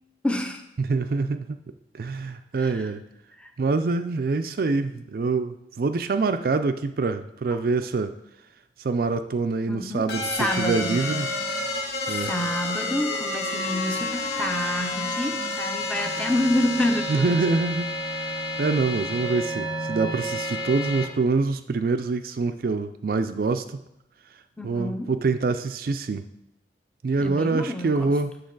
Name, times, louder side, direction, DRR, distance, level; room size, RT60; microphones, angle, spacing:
voice 1, 0.2-0.6 2.6-2.9 3.4-3.5 9.7-10.1 10.4-11.1 12.1-17.6 24.6-25.1 27.2-28.1, left 1 dB, 5° left, 5 dB, 0.6 m, -28 dB
voice 2, 0.8-1.6 1.9-3.0 3.6-8.1 8.8-11.3 12.1-12.3 17.1-18.3 18.6-23.8 24.6-26.2 27.0-28.3, right 3 dB, 55° right, 9 dB, 0.4 m, -25 dB
sound 1, 10.1-21.1, left 2 dB, 65° left, 1.2 m, -30 dB
8.6 x 6.6 x 3.9 m, 0.83 s
head